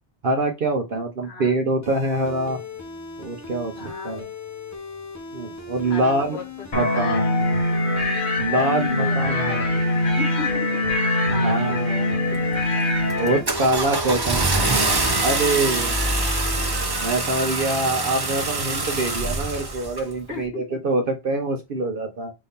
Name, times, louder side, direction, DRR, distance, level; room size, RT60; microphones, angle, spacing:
voice 1, 0.2-2.6 3.2-4.3 5.3-6.4 6.7-7.3 8.4-9.7 11.3-12.0 13.2-16.0 17.0-22.3, right 2 dB, 55° right, 4 dB, 0.9 m, -25 dB
voice 2, 1.2-1.5 3.7-4.2 5.8-7.3 8.6-10.7 11.3-12.1 16.2-16.5 20.3-20.8, left 4 dB, 70° left, 1 dB, 1.6 m, -36 dB
sound 1, 1.8-16.7, left 3 dB, 20° left, 0.7 m, -38 dB
sound 2, 6.7-13.4, left 2 dB, 45° left, 1.1 m, -23 dB
Car / Engine starting, 12.3-12.6 13.1-20.1, right 2 dB, 25° right, 0.7 m, -24 dB
5.4 x 2.7 x 3.6 m, 0.23 s
omnidirectional pair, 1.1 m